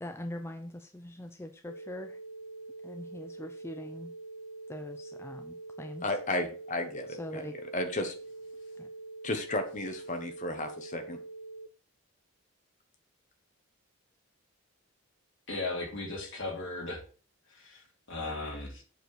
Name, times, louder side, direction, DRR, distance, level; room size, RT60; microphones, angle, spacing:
voice 1, 0.0-2.2 2.8-4.1 4.7-6.2 7.1-7.6 8.8-8.9, left 1 dB, 10° left, 7 dB, 0.5 m, -42 dB
sound 1, 1.7-11.7, right 2 dB, 80° left, 0.5 m, -45 dB
voice 2, 6.0-7.4 7.7-8.1 9.2-11.2, left 1 dB, 35° left, 6 dB, 1.3 m, -33 dB
voice 3, 15.5-17.0 17.5-18.8, left 2 dB, 55° left, -2 dB, 3.1 m, -37 dB
7.9 x 4.6 x 6.2 m, 0.40 s
head